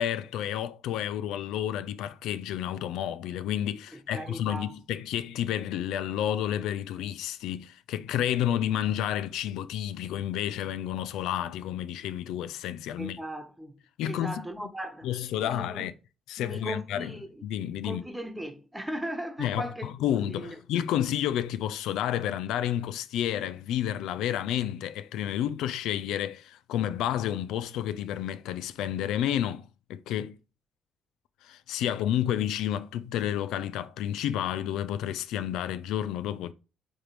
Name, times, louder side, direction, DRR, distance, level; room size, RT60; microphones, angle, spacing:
voice 1, 0.0-13.2 14.0-14.4 15.0-15.9 16.3-17.1 17.4-18.0 19.4-30.4 31.4-36.5, left 11 dB, 90° left, 0.4 m, -30 dB
voice 2, 3.9-4.7 13.0-15.9 16.4-17.4 17.8-20.6, right 1 dB, 5° right, 1.2 m, -38 dB
8.7 x 3.2 x 3.3 m
cardioid pair, 90°, 0 cm